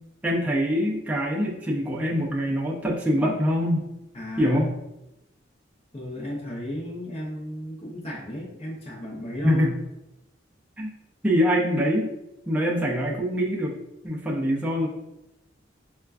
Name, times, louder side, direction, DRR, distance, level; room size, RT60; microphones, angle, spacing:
voice 1, 0.2-3.8 4.4-4.7 9.4-9.7 10.8-10.9 11.2-12.1 12.5-13.8 14.0-14.9, equal, 10° right, -3 dB, 0.5 m, -24 dB
voice 2, 4.1-4.6 5.9-9.7, equal, 30° left, -4 dB, 0.7 m, -34 dB
4.3 x 2.3 x 2.4 m, 0.94 s
head